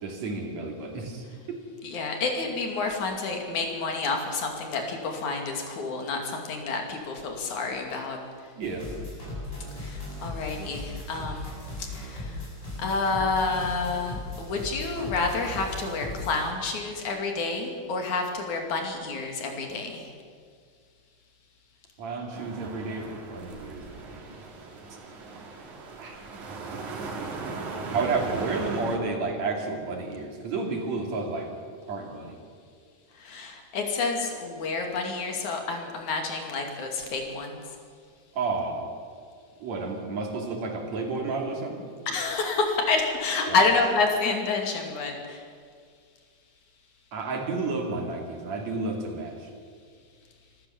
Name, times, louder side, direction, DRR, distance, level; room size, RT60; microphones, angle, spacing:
voice 1, 0.0-1.6 8.6-8.8 22.0-24.3 26.0-26.2 27.9-31.5 31.9-32.4 38.4-38.9 39.6-41.8 43.5-43.6 47.1-49.4, right 3 dB, 65° right, 2 dB, 3.8 m, -31 dB
voice 2, 1.8-8.2 9.8-11.5 11.8-12.4 12.8-20.1 33.2-37.6 42.1-45.4, left 3 dB, 85° left, 3 dB, 4.0 m, -29 dB
sound 1, 8.6-16.5, left 2 dB, 20° left, 8.0 m, -37 dB
sound 2, 22.3-29.0, right 4 dB, 90° right, 3.6 m, -37 dB
26.5 x 13.5 x 7.3 m, 2.1 s
omnidirectional pair, 3.3 m